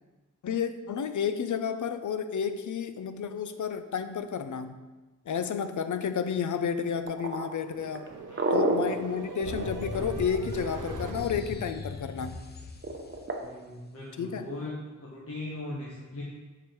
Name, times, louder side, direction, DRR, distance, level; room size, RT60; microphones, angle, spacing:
voice 1, 0.4-4.8 5.3-8.1 8.5-12.4 14.2-14.5, left 7 dB, 75° left, 10 dB, 0.5 m, -31 dB
sound 1, 6.6-11.3, right 5 dB, 80° right, 0.6 m, -42 dB
sound 2, 7.1-10.8 12.8-13.4, right 2 dB, 40° right, 0.8 m, -29 dB
voice 2, 8.3-8.9 13.4-14.7 15.0-16.2, left 2 dB, 50° left, -6 dB, 1.3 m, -40 dB
sound 3, 9.4-13.3, left 3 dB, 35° left, 0.7 m, -39 dB
7.0 x 4.9 x 4.5 m, 1.2 s
wide cardioid pair, 115°, 30 cm